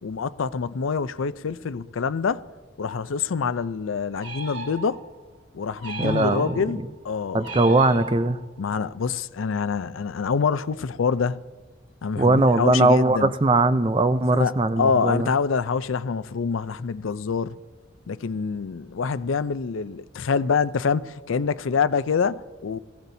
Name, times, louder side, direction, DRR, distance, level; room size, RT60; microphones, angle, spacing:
voice 1, 0.0-2.5 2.8-5.0 5.5-7.7 8.6-11.4 12.0-13.3 14.3-17.5 18.1-22.8, left 5 dB, 90° left, 0.5 m, -26 dB
sound 1, 4.2-5.2 5.8-6.8 7.4-8.6, right 3 dB, 70° right, 3.3 m, -36 dB
voice 2, 6.0-6.5 7.3-8.4 12.2-15.3, right 2 dB, 25° right, 0.5 m, -20 dB
22.0 x 15.5 x 2.7 m
head